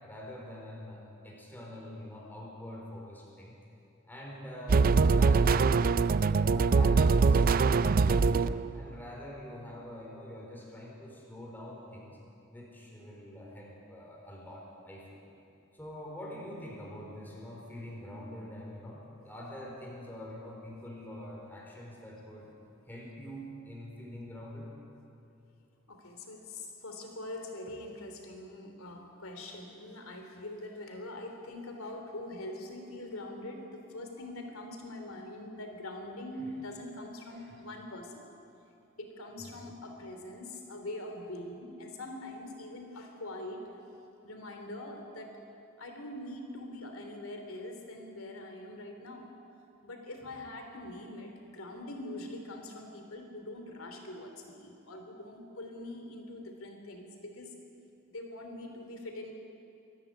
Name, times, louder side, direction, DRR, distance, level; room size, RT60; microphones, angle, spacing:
voice 1, 0.0-3.5 4.1-8.5 8.7-12.2 12.5-15.2 15.7-22.5 22.9-24.7 36.4-36.5 37.4-37.5 39.4-39.6, left 1 dB, 10° left, -3 dB, 4.6 m, -45 dB
sound 1, 4.7-8.8, right 4 dB, 40° right, 0.4 m, -23 dB
voice 2, 25.9-38.3 39.0-43.6 44.2-45.4 45.8-49.3 49.8-57.5 58.1-59.3, left 1 dB, 65° left, 4 dB, 3.3 m, -43 dB
24.5 x 13.0 x 9.5 m, 2.7 s
head